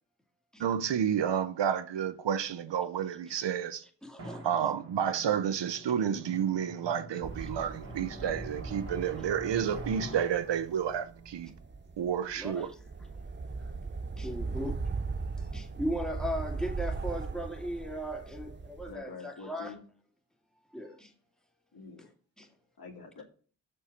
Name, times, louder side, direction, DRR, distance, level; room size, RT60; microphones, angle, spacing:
voice 1, 0.6-3.8 4.4-11.5 12.0-12.7, right 8 dB, 80° right, 0.8 m, -30 dB
voice 2, 4.0-4.5 12.4-12.8 14.2-14.8 15.5-19.8 20.7-21.1 22.4-22.5, equal, ahead, 2.4 m, -37 dB
Drum, 4.2-12.5, right 2 dB, 55° right, 2.9 m, -45 dB
sound 1, 7.2-18.9, right 4 dB, 25° right, 0.7 m, -39 dB
voice 3, 18.9-19.8 21.7-22.1 22.8-23.2, left 4 dB, 60° left, 2.6 m, -46 dB
6.6 x 5.5 x 7.0 m
cardioid pair, 40°, 42 cm